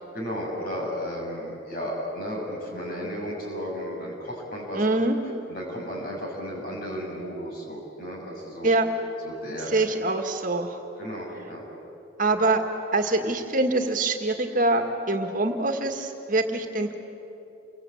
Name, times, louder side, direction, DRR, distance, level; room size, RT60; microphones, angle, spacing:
voice 1, 0.1-5.1 5.5-8.7 9.2-9.8 11.0-11.6, equal, 50° left, -1 dB, 7.1 m, -34 dB
voice 2, 4.7-5.2 8.6-8.9 9.7-10.7 12.2-12.6 12.9-17.0, right 2 dB, 45° right, 5 dB, 1.9 m, -24 dB
29.0 x 23.0 x 8.5 m, 3.0 s
head